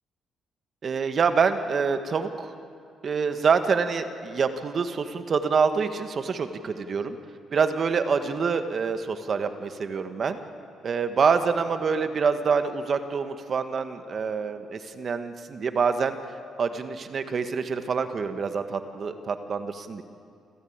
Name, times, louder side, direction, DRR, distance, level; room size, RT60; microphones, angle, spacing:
voice 1, 0.8-2.5 3.0-7.2 7.5-10.4 10.8-16.1 16.6-20.0, right 5 dB, 50° right, 9 dB, 1.5 m, -26 dB
28.5 x 14.5 x 8.8 m, 2.4 s
cardioid pair, 90°, 0 cm